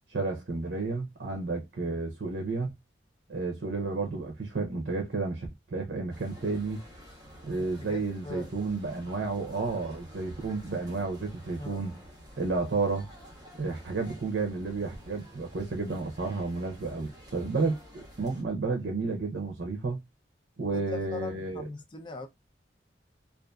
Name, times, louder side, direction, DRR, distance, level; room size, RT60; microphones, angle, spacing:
voice 1, 0.1-2.7 3.3-6.8 7.5-12.0 12.4-13.1 13.6-20.0 20.6-21.6, right 3 dB, 65° right, 0.6 m, -31 dB
sound 1, 6.1-18.4, equal, 20° right, 0.9 m, -51 dB
voice 2, 7.6-8.5 11.6-11.8 20.7-22.3, left 1 dB, 25° left, 0.4 m, -41 dB
2.5 x 2.4 x 2.3 m
head